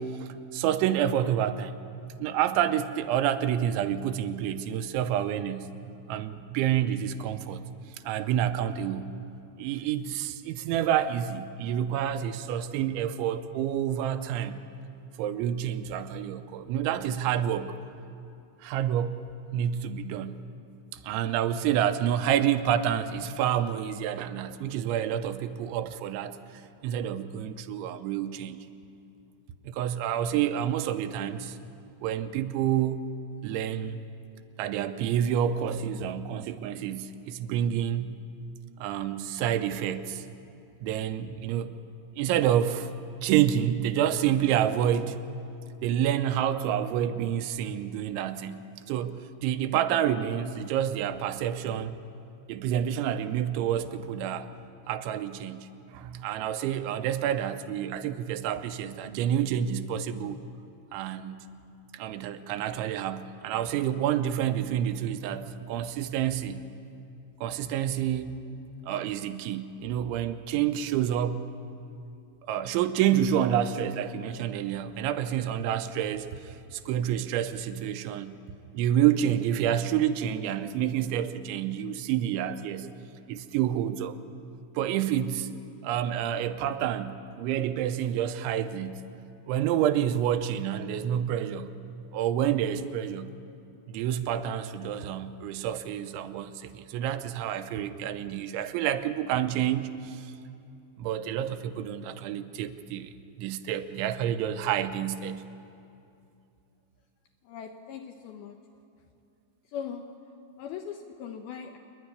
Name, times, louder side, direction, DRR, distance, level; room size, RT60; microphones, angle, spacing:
voice 1, 0.0-1.7 2.2-5.7 6.1-7.6 8.0-9.1 9.6-14.6 15.2-17.7 18.6-19.2 19.5-20.4 20.9-28.6 29.6-31.6 32.0-33.1 33.4-34.0 34.6-38.2 38.8-40.3 40.8-41.8 42.2-42.9 43.2-45.2 45.8-48.6 48.9-52.0 52.5-54.5 54.9-60.4 60.9-61.4 61.9-66.6 67.4-68.4 68.9-71.4 72.5-78.3 78.7-82.9 83.3-84.2 84.8-85.5 85.8-88.9 89.5-91.7 92.1-93.3 93.9-100.3 101.0-103.1 103.4-105.4, right 10 dB, 85° right, 10 dB, 3.1 m, -28 dB
voice 2, 107.4-108.6 109.7-110.0 110.6-111.8, left 8 dB, 75° left, 4 dB, 2.3 m, -39 dB
27.0 x 11.0 x 9.7 m, 2.6 s
omnidirectional pair, 5.3 m